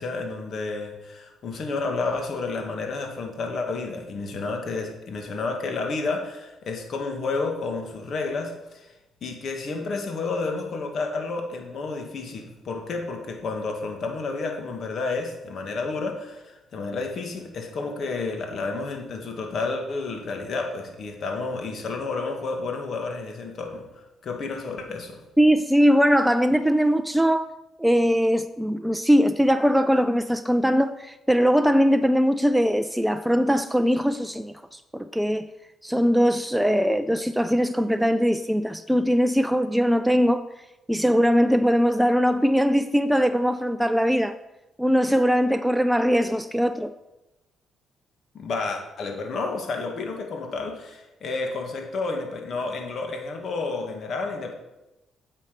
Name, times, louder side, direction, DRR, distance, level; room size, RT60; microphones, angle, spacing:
voice 1, 0.0-8.9 9.2-23.8 24.2-25.2 48.3-54.5, left 3 dB, 60° left, 2.0 m, -30 dB
voice 2, 25.4-27.5 27.8-35.5 35.8-40.4 40.9-44.3 44.8-46.9, equal, 5° right, 0.5 m, -21 dB
9.8 x 7.4 x 5.2 m
cardioid pair, 90°, 0 cm